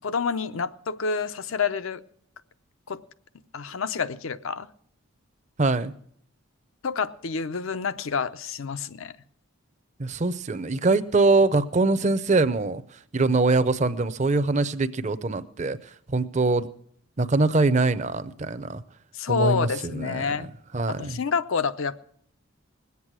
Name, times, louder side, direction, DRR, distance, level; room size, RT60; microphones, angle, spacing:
voice 1, 0.0-2.0 2.9-3.0 3.5-4.7 6.8-9.1 19.1-20.5 20.9-22.0, left 5 dB, 70° left, 13 dB, 0.6 m, -28 dB
voice 2, 5.6-5.9 10.0-16.7 17.2-18.8 19.3-20.5 20.7-21.2, right 3 dB, 35° right, 12 dB, 0.6 m, -23 dB
20.0 x 8.3 x 6.1 m, 0.64 s
head